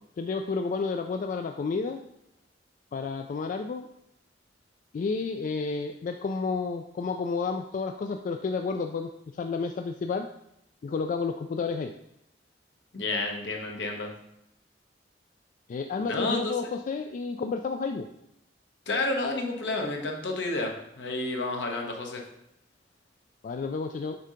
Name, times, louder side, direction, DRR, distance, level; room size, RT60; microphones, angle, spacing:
voice 1, 0.2-2.0 2.9-3.9 4.9-10.3 10.8-11.9 15.7-18.1 23.4-24.2, left 4 dB, 45° left, 6 dB, 0.3 m, -31 dB
voice 2, 12.9-14.1 16.0-16.5 18.9-22.2, left 2 dB, 75° left, 2 dB, 1.0 m, -30 dB
6.7 x 2.8 x 5.0 m, 0.80 s
head